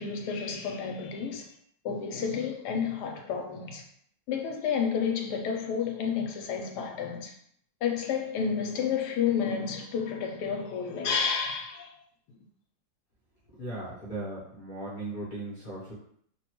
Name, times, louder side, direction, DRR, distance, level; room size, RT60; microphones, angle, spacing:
voice 1, 0.0-1.5 1.8-3.8 4.3-7.3 7.8-11.9, left 6 dB, 75° left, 1.1 m, -30 dB
voice 2, 13.6-15.9, right 2 dB, 60° left, 0.5 m, -37 dB
3.0 x 2.2 x 2.9 m
omnidirectional pair, 1.9 m